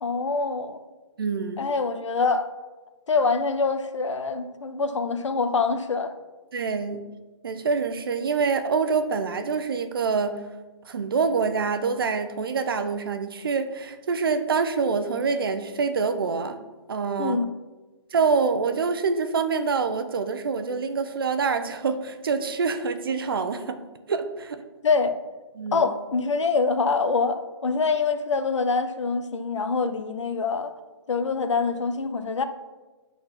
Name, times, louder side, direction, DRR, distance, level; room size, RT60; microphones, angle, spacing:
voice 1, 0.0-0.8 1.6-2.5 3.1-6.1 17.2-17.5 24.8-25.1 25.7-30.7 31.1-32.4, left 4 dB, 80° left, 9 dB, 0.9 m, -25 dB
voice 2, 1.2-1.6 6.5-7.0 7.4-10.4 10.9-16.6 16.9-17.4 18.1-23.8 24.1-24.6 25.6-25.9, right 5 dB, 50° right, 9 dB, 0.8 m, -26 dB
10.5 x 4.2 x 5.9 m, 1.2 s
hypercardioid pair, 175°, 15 cm